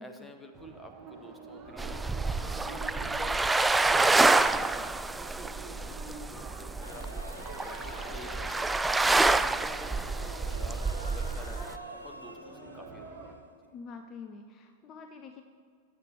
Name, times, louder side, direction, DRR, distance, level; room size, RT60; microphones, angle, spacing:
voice 1, 0.0-13.1, left 1 dB, 5° left, 4 dB, 1.1 m, -49 dB
sound 1, 0.5-13.4, right 4 dB, 30° right, 1.3 m, -47 dB
sound 2, 1.8-11.8, right 3 dB, 10° right, 0.3 m, -28 dB
sound 3, 6.8-14.0, equal, 90° left, 1.0 m, -48 dB
voice 2, 13.7-15.4, left 5 dB, 30° left, 6 dB, 0.6 m, -46 dB
20.0 x 8.4 x 3.0 m, 2.2 s
figure-of-eight pair, 90°, 0 cm